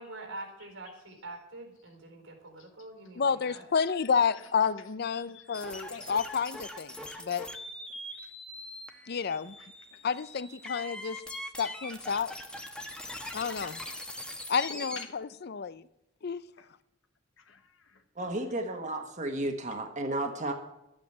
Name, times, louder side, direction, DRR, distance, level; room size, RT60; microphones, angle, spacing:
voice 1, 0.0-3.7, right 2 dB, 85° right, 4.1 m, -45 dB
voice 2, 3.2-7.5 9.1-9.6 10.0-11.2 11.6-12.3 13.3-13.8 14.5-15.8 16.2-16.4, left 6 dB, 55° left, 0.5 m, -30 dB
voice 3, 5.1-6.1 9.6-10.0 14.7-15.2 16.6-16.7 17.4-18.0, left 5 dB, 75° left, 1.3 m, -49 dB
sound 1, 5.5-15.0, left 1 dB, 5° left, 1.2 m, -42 dB
voice 4, 18.2-20.5, right 1 dB, 40° right, 1.5 m, -33 dB
13.0 x 8.8 x 8.0 m
head